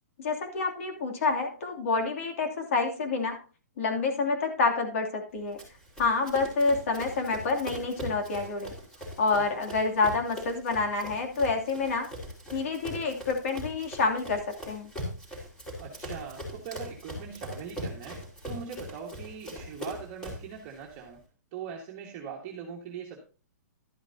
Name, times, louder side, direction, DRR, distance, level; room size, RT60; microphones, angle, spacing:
voice 1, 0.2-3.4 3.8-5.6 6.0-8.7 9.2-12.1 12.5-14.4 14.6-14.9, left 4 dB, 50° left, 3 dB, 2.9 m, -28 dB
Run, 5.6-20.5, equal, 5° left, 4.0 m, -41 dB
voice 2, 15.8-21.2 21.5-23.2, right 6 dB, 25° right, -1 dB, 1.8 m, -41 dB
12.0 x 10.0 x 2.8 m, 0.35 s
hypercardioid pair, 165°, 9 cm